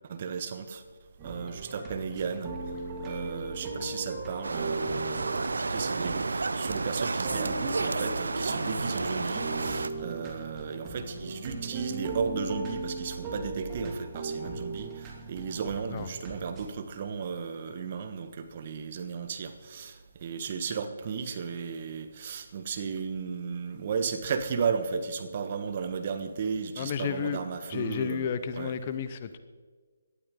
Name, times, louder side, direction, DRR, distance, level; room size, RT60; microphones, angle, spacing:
voice 1, 0.1-0.8 1.2-2.5 3.0-28.7, right 6 dB, 40° right, 8 dB, 1.4 m, -34 dB
sound 1, 1.2-16.7, right 2 dB, 20° right, 2.4 m, -38 dB
sound 2, 4.4-9.9, right 3 dB, 70° right, 0.7 m, -31 dB
voice 2, 26.8-27.4 27.7-29.4, left 7 dB, 35° left, 12 dB, 0.8 m, -32 dB
18.0 x 12.0 x 3.8 m, 1.5 s
figure-of-eight pair, 145°, 0 cm